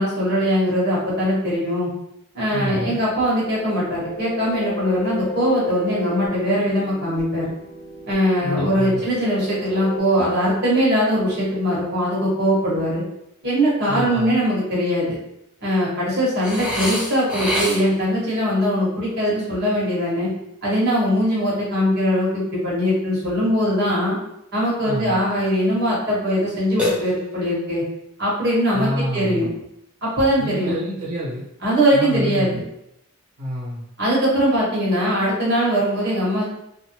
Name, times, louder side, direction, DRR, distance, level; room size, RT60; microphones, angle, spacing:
voice 1, 0.0-1.9 2.3-7.5 8.1-13.0 13.4-15.2 15.6-20.3 20.6-24.2 24.5-27.8 28.2-29.5 30.0-30.7 31.6-32.6 34.0-36.4, equal, 50° right, -7 dB, 1.1 m, -21 dB
voice 2, 2.5-3.0 8.4-9.0 13.8-14.4 24.8-25.2 28.7-29.5 30.4-31.5 31.9-32.6 33.4-33.8, equal, 85° right, -7 dB, 0.9 m, -28 dB
sound 1, 3.0-10.0, left 1 dB, 75° left, 0.5 m, -34 dB
Burping eructation, 16.4-18.1 26.8-27.6, left 1 dB, 5° right, 0.4 m, -26 dB
2.5 x 2.2 x 2.8 m, 0.81 s
head